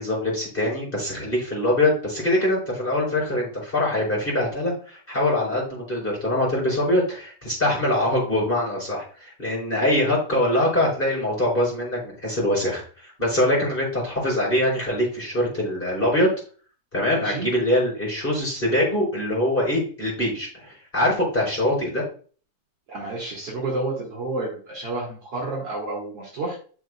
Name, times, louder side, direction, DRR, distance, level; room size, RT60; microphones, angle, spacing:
voice 1, 0.0-16.3 16.9-22.0, left 1 dB, 15° left, -5 dB, 4.8 m, -23 dB
voice 2, 17.1-17.5 22.9-26.6, right 2 dB, 50° right, -4 dB, 2.8 m, -30 dB
12.5 x 6.2 x 2.3 m, 0.40 s
omnidirectional pair, 3.8 m